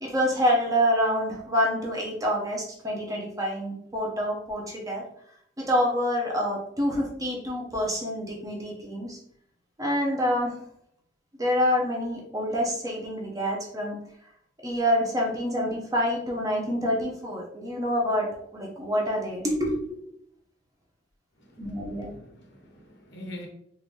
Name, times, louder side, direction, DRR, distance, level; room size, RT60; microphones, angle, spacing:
voice 1, 0.0-5.0 5.6-9.2 9.8-10.5 11.4-14.0 14.6-18.3 18.5-20.0 21.6-22.1, equal, 20° right, -1 dB, 0.8 m, -27 dB
voice 2, 21.4-23.5, equal, 65° left, 2 dB, 0.9 m, -44 dB
3.8 x 2.6 x 3.2 m, 0.69 s
head